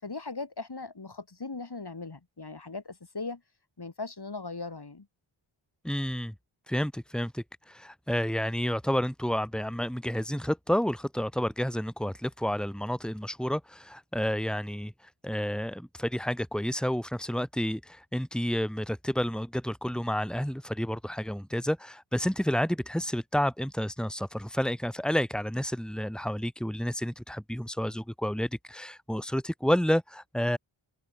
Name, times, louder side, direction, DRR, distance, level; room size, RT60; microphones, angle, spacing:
voice 1, 0.0-3.4 3.8-5.1, left 3 dB, 50° left, 5.6 m, -39 dB
voice 2, 5.8-6.3 6.7-14.9 15.2-30.6, equal, ahead, 4.2 m, -30 dB
open air
cardioid pair, 45°, 50 cm